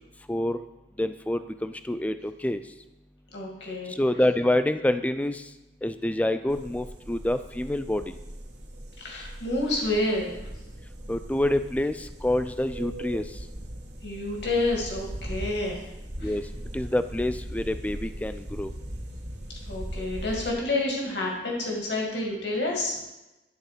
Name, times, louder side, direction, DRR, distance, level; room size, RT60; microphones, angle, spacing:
voice 1, 1.0-2.6 3.9-5.4 5.8-8.1 11.1-13.2 16.2-16.4 16.7-18.7, left 1 dB, 10° left, 10 dB, 0.3 m, -27 dB
voice 2, 3.3-4.0 9.0-10.3 14.0-15.8 16.2-16.3 19.7-23.0, left 2 dB, 75° left, -2 dB, 2.1 m, -29 dB
sound 1, 6.5-20.5, right 1 dB, 80° right, 1.6 m, -39 dB
11.0 x 4.1 x 6.6 m, 0.98 s
head